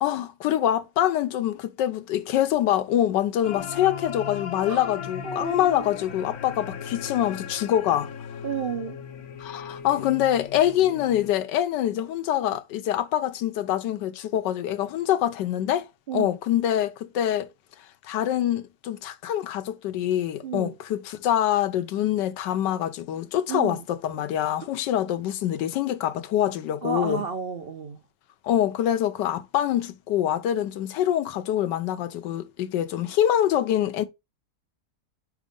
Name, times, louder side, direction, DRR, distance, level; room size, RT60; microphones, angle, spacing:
voice 1, 0.0-8.1 9.4-15.8 16.1-17.5 18.0-27.2 28.4-34.0, left 11 dB, 80° left, 1.3 m, -25 dB
sound 1, 3.4-11.3, left 7 dB, 65° left, 1.2 m, -37 dB
voice 2, 5.2-5.9 8.4-9.0 16.1-16.3 20.4-20.7 23.5-23.8 26.8-28.0, right 6 dB, 75° right, 0.5 m, -31 dB
5.1 x 3.6 x 5.1 m
omnidirectional pair, 1.9 m